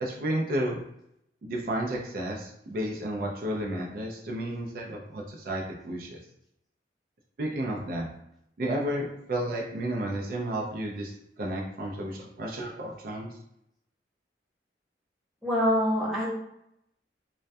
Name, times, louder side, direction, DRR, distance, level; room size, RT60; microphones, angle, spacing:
voice 1, 0.0-0.8 1.4-6.2 7.4-8.1 8.6-13.3, right 1 dB, 55° right, -1 dB, 0.4 m, -32 dB
voice 2, 15.4-16.3, equal, ahead, -7 dB, 0.6 m, -25 dB
2.2 x 2.1 x 2.6 m, 0.78 s
head